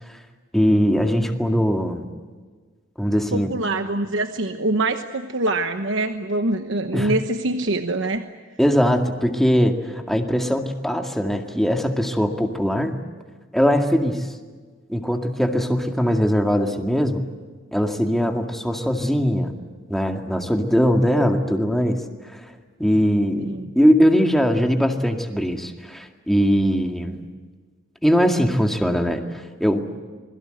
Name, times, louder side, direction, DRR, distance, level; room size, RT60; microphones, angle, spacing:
voice 1, 0.5-2.1 3.0-3.6 6.9-7.1 8.6-13.0 13.5-14.3 14.9-17.2 17.7-19.5 19.9-22.0 22.3-22.5 22.8-27.2 28.0-29.9, equal, ahead, 3 dB, 2.1 m, -20 dB
voice 2, 3.3-8.3 23.5-23.7, right 2 dB, 65° right, 7 dB, 1.1 m, -24 dB
27.5 x 21.5 x 7.9 m, 1.5 s
head